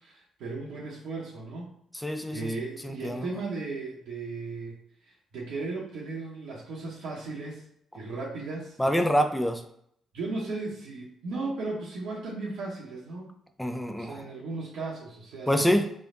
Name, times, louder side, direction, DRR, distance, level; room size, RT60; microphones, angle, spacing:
voice 1, 0.0-1.7 2.0-4.8 5.0-7.6 7.9-8.8 10.1-13.3 14.0-15.7, right 3 dB, 65° right, -5 dB, 0.7 m, -36 dB
voice 2, 1.9-2.5 2.8-3.3 8.8-9.6 13.6-14.3 15.5-15.9, equal, 5° left, 6 dB, 0.5 m, -26 dB
3.8 x 3.2 x 2.5 m, 0.70 s
figure-of-eight pair, 40°, 0 cm